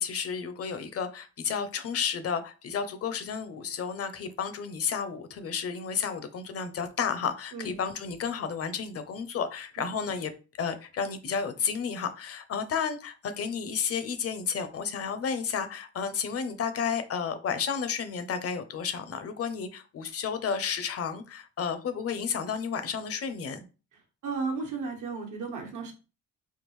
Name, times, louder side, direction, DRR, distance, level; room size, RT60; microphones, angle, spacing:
voice 1, 0.0-10.3 10.6-23.6, left 6 dB, 50° left, 0.6 m, -32 dB
voice 2, 24.2-25.9, right 4 dB, 80° right, 1.1 m, -34 dB
3.6 x 2.4 x 3.1 m
cardioid pair, 90°, 30 cm